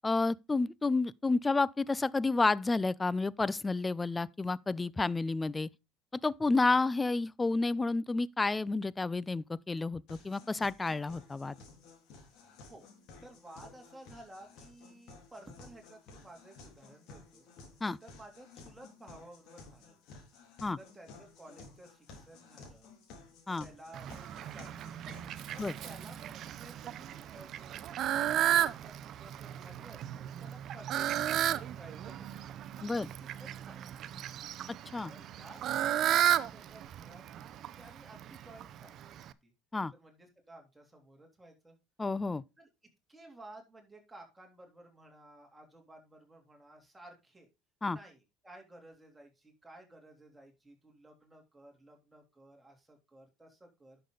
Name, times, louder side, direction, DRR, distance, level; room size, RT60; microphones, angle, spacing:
voice 1, 0.0-5.7 6.2-11.6 17.8-18.0 20.6-20.8 23.5-23.7 25.6-25.7 32.8-33.1 34.9-35.1 39.7-39.9 42.0-42.4 47.8-48.0, left 3 dB, 15° left, 0.4 m, -30 dB
sound 1, 10.1-26.1, left 3 dB, 65° left, 3.7 m, -54 dB
voice 2, 13.2-17.5 18.0-20.2 20.8-22.9 23.6-25.0 25.5-32.6 32.9-34.1 35.1-39.5 39.9-41.8 42.6-42.7 43.1-47.5 47.9-54.0, right 1 dB, 10° right, 3.2 m, -55 dB
Fowl, 23.9-39.3, right 11 dB, 55° right, 0.6 m, -34 dB
10.5 x 6.7 x 3.9 m
supercardioid pair, 95°, 0 cm